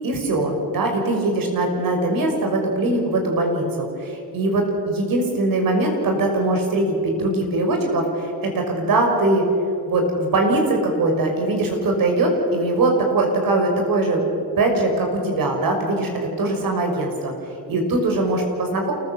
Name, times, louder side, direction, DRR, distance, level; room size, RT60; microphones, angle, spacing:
voice 1, 0.0-9.4 9.9-17.3 17.7-18.9, right 2 dB, 60° right, 2 dB, 5.8 m, -21 dB
28.0 x 15.5 x 7.2 m, 2.7 s
supercardioid pair, 70°, 38 cm